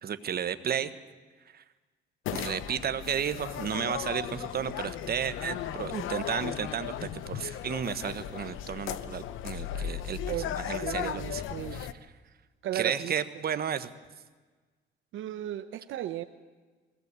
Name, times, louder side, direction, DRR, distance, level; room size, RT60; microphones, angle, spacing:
voice 1, 0.0-0.9 1.5-1.6 2.3-11.4 11.7-11.9 12.7-13.9, right 8 dB, 50° right, 11 dB, 1.2 m, -33 dB
sound 1, 2.3-11.9, left 10 dB, 85° left, 0.9 m, -36 dB
voice 2, 10.8-11.8 12.6-13.1 15.1-16.2, right 12 dB, 80° right, 9 dB, 0.8 m, -35 dB
22.0 x 17.0 x 8.1 m, 1.4 s
cardioid pair, 90°, 20 cm